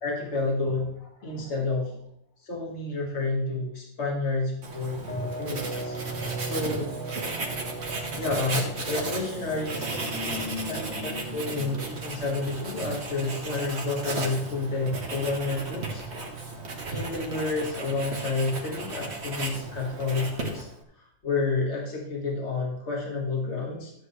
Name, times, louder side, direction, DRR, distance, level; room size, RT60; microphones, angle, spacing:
voice 1, 0.0-1.0 1.2-1.9 2.4-6.0 6.4-6.9 8.2-9.8 10.7-16.0 16.9-20.7 21.0-23.9, left 3 dB, 55° left, -1 dB, 2.1 m, -30 dB
voice 2, 0.6-2.0 7.5-12.8, left 3 dB, 85° left, -1 dB, 2.7 m, -42 dB
Writing, 4.6-20.8, right 3 dB, 55° right, 1.6 m, -35 dB
sound 1, 5.1-18.1, right 2 dB, 15° left, 0.4 m, -41 dB
13.0 x 8.3 x 3.2 m, 0.72 s
omnidirectional pair, 1.4 m